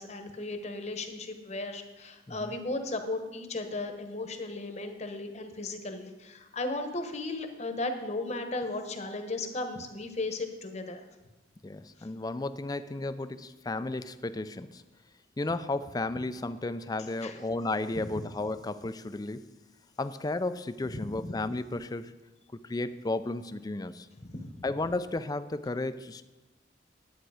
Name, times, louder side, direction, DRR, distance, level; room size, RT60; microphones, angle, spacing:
voice 1, 0.0-11.0 17.2-17.4 17.9-18.2 20.9-21.3 24.2-24.6, left 2 dB, 35° left, 6 dB, 1.0 m, -36 dB
voice 2, 11.6-14.8 15.4-19.4 20.0-22.1 22.6-24.1 24.6-26.2, left 2 dB, 20° left, 12 dB, 0.4 m, -33 dB
10.5 x 8.8 x 4.9 m, 1.1 s
head